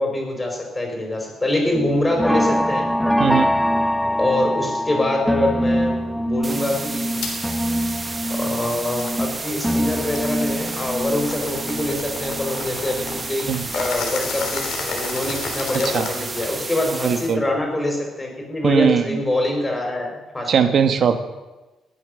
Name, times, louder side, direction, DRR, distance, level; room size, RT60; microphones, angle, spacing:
voice 1, 0.0-2.9 4.2-7.2 8.3-13.5 13.7-20.5, left 1 dB, 20° left, 1 dB, 5.0 m, -24 dB
sound 1, 1.7-13.9 14.3-15.9 16.2-16.6 16.9-17.0, equal, ahead, 0.5 m, -24 dB
sound 2, 6.4-17.4, right 3 dB, 30° right, 1.4 m, -32 dB
sound 3, 7.2-7.4 7.9-16.7, left 5 dB, 80° left, 2.9 m, -33 dB
voice 2, 17.0-17.4 18.6-19.2 20.5-21.2, right 6 dB, 60° right, 9 dB, 1.4 m, -19 dB
20.5 x 8.3 x 6.6 m, 1.1 s
cardioid pair, 90°, 0 cm